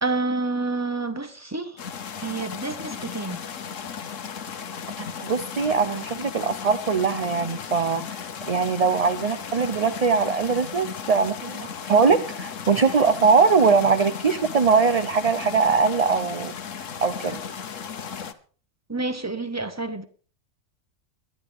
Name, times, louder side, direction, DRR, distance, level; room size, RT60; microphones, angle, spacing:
voice 1, 0.0-1.8 2.2-3.4 18.9-20.0, right 3 dB, 15° right, 1.3 m, -28 dB
sound 1, 1.8-18.3, left 7 dB, 85° left, 1.4 m, -35 dB
voice 2, 5.0-16.5 17.0-17.4, right 5 dB, 35° right, 0.7 m, -21 dB
21.5 x 11.5 x 3.5 m
omnidirectional pair, 1.3 m